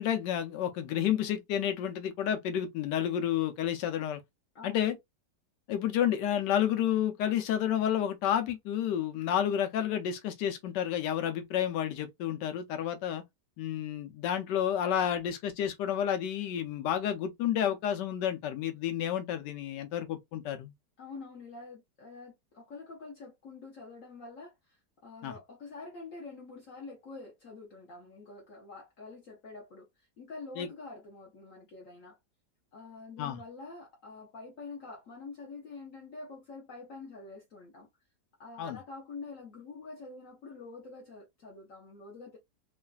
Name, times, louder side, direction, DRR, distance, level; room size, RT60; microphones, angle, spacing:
voice 1, 0.0-4.2 4.6-4.9 5.7-13.2 13.6-20.7 25.2-25.3 30.6-30.7 33.2-33.4 38.6-38.8, left 10 dB, 90° left, 1.3 m, -30 dB
voice 2, 4.5-4.9 21.0-32.2 32.7-37.9 38.4-42.4, left 3 dB, 60° left, 1.0 m, -46 dB
3.1 x 2.4 x 2.3 m
omnidirectional pair, 1.8 m